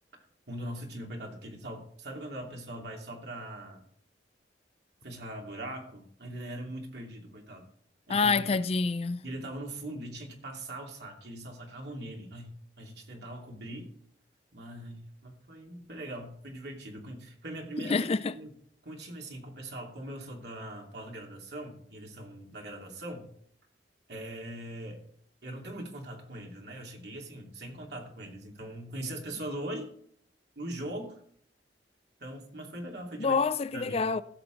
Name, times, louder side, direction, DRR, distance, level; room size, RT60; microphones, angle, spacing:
voice 1, 0.5-3.8 5.0-7.7 8.1-8.6 9.2-12.5 12.8-13.9 14.5-18.1 18.3-18.6 18.8-23.3 24.1-25.0 25.4-29.9 30.6-31.2 32.2-33.4 33.7-34.1, right 1 dB, 65° right, 2.8 m, -41 dB
voice 2, 8.1-9.2 17.8-18.3 33.2-34.2, left 4 dB, 35° left, 0.4 m, -27 dB
16.5 x 7.0 x 3.9 m
head